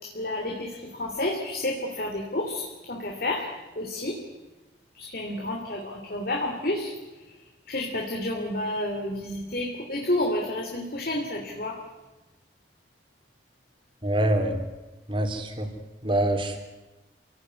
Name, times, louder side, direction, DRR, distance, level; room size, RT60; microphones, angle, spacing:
voice 1, 0.0-3.5 3.7-4.2 4.9-6.9 7.7-11.8, left 1 dB, 55° left, 1 dB, 3.2 m, -30 dB
voice 2, 14.0-14.6 15.1-15.7 16.0-16.6, right 1 dB, 30° right, 5 dB, 3.5 m, -25 dB
29.0 x 17.5 x 9.7 m, 1.1 s
head